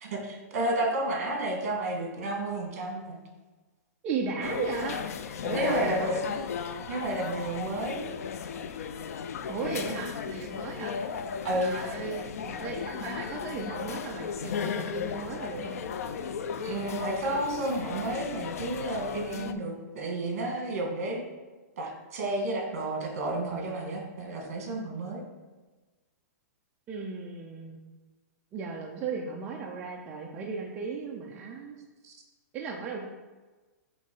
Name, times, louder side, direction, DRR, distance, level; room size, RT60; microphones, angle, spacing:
voice 1, 0.0-3.2 5.5-6.2 6.9-8.1 11.4-11.8 16.6-21.2 21.8-25.2 32.0-32.1, right 1 dB, 50° right, 1 dB, 1.8 m, -31 dB
voice 2, 4.0-5.0 5.4-6.4 9.5-10.9 11.6-15.8 26.9-27.8 28.5-31.9 32.5-33.1, right 5 dB, 15° right, -2 dB, 0.4 m, -36 dB
sound 1, 4.4-19.5, left 7 dB, 60° left, 0.4 m, -35 dB
7.5 x 3.2 x 5.3 m, 1.3 s
hypercardioid pair, 175°, 9 cm